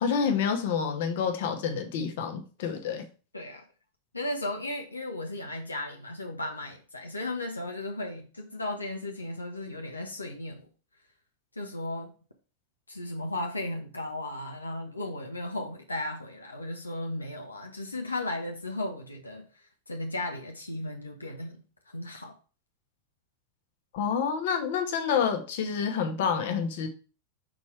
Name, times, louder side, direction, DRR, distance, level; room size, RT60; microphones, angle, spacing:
voice 1, 0.0-3.0 23.9-26.9, left 6 dB, 55° left, 5 dB, 1.1 m, -28 dB
voice 2, 3.3-3.6 4.1-10.7 11.6-12.1 12.9-19.5 19.9-22.3, left 1 dB, 80° left, 2 dB, 0.9 m, -35 dB
6.1 x 4.2 x 4.8 m, 0.36 s
figure-of-eight pair, 90°, 0 cm